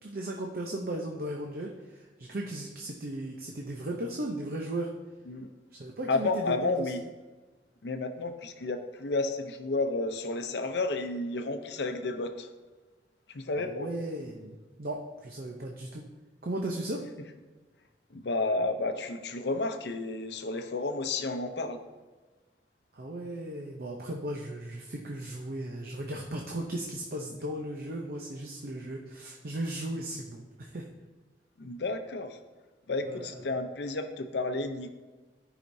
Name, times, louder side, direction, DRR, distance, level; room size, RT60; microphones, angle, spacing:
voice 1, 0.0-4.9 5.7-6.9 13.6-16.0 16.4-17.1 22.9-30.9 33.0-33.3, right 1 dB, 55° right, 0 dB, 0.7 m, -36 dB
voice 2, 6.1-7.0 7.8-12.5 13.3-13.9 18.1-21.8 31.6-32.4 32.9-34.9, left 3 dB, 75° left, 7 dB, 0.6 m, -31 dB
13.5 x 5.0 x 2.7 m, 1.3 s
head